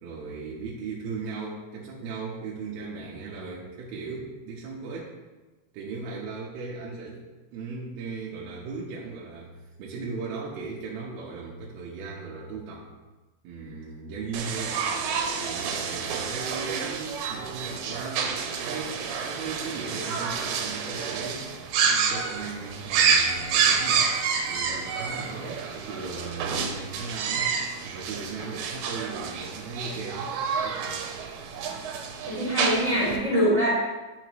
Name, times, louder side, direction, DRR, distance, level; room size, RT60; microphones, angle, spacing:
voice 1, 0.0-5.2 5.7-7.2 7.5-9.5 9.8-12.9 13.4-14.8 15.3-24.1 24.5-27.5 27.8-31.0, right 4 dB, 70° right, -6 dB, 2.8 m, -37 dB
sound 1, 14.3-33.2, right 6 dB, 90° right, 3.0 m, -29 dB
voice 2, 32.3-33.7, equal, 20° right, -6 dB, 2.6 m, -23 dB
10.5 x 5.9 x 3.1 m, 1.2 s
omnidirectional pair, 5.0 m